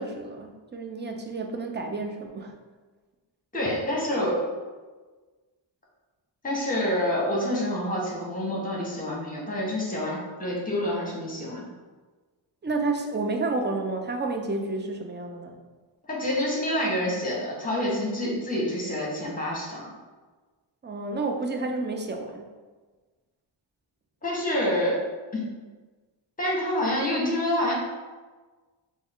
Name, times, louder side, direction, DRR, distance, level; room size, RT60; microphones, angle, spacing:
voice 1, 0.0-2.5 12.6-15.5 20.8-22.5, right 3 dB, 25° right, 3 dB, 0.4 m, -30 dB
voice 2, 3.5-4.4 6.4-11.7 16.1-19.9 24.2-25.0 25.3-25.4 26.4-27.7, left 1 dB, 20° left, -3 dB, 1.1 m, -27 dB
3.5 x 2.1 x 3.5 m, 1.3 s
wide cardioid pair, 85°, 46 cm